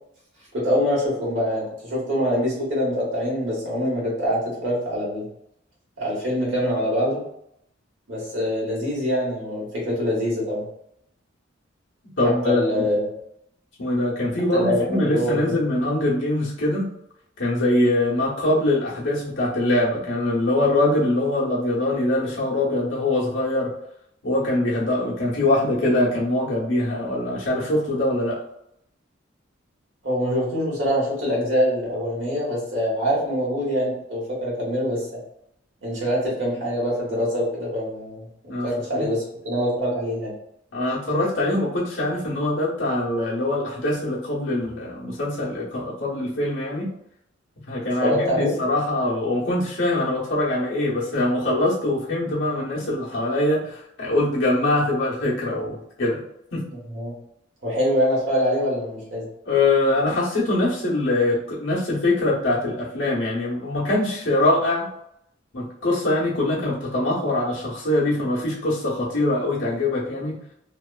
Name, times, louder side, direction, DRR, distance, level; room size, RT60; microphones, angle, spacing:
voice 1, 0.5-5.3 6.0-7.2 8.1-10.6 12.2-13.1 14.5-15.4 30.0-35.1 35.8-38.3 38.6-40.3 48.0-48.5 56.9-57.1 57.6-59.2, equal, 65° right, -5 dB, 1.2 m, -24 dB
voice 2, 12.2-12.8 13.8-16.9 17.4-23.7 24.2-28.4 38.5-39.1 40.7-46.9 47.7-56.2 56.5-56.6 59.5-64.9 65.5-70.4, left 2 dB, 70° left, -6 dB, 0.9 m, -23 dB
2.8 x 2.3 x 2.2 m, 0.76 s
head